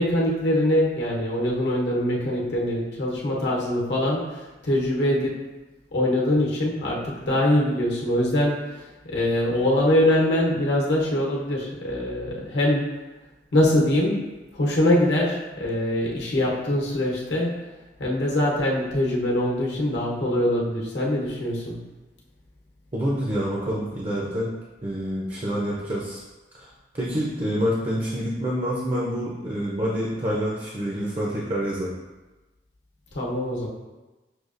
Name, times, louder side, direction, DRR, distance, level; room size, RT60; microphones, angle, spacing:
voice 1, 0.0-5.4 5.9-12.9 13.5-14.2 14.5-17.6 18.0-21.8 33.1-33.7, left 1 dB, 85° left, -3 dB, 0.9 m, -23 dB
voice 2, 22.9-24.5 24.8-26.2 26.5-26.7 26.9-31.9, equal, 30° right, -4 dB, 0.5 m, -27 dB
6.3 x 2.3 x 2.4 m, 1.1 s
head